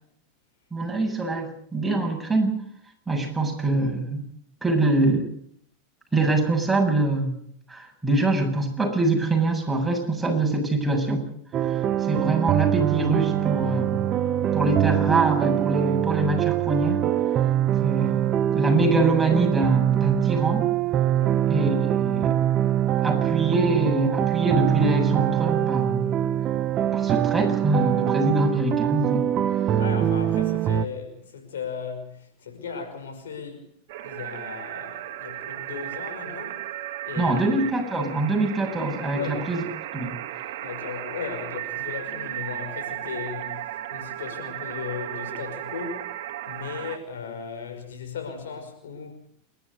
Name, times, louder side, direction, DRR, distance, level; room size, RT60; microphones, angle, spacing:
voice 1, 0.7-2.6 3.1-4.2 4.6-5.3 6.1-7.4 7.7-11.3 11.6-14.1 14.5-17.0 17.8-20.7 21.5-22.3 23.0-26.1 26.9-29.2 37.2-39.6 39.9-40.1, right 2 dB, 5° right, 7.9 m, -24 dB
sound 1, 11.5-30.9, right 11 dB, 40° right, 1.2 m, -23 dB
voice 2, 21.1-21.5 29.8-33.7 34.0-36.7 37.1-37.6 39.1-39.4 40.6-46.1 46.5-49.2, left 6 dB, 80° left, 5.4 m, -36 dB
sound 2, 33.9-47.0, right 13 dB, 65° right, 2.4 m, -35 dB
29.0 x 13.0 x 8.2 m
hypercardioid pair, 95°, 0 cm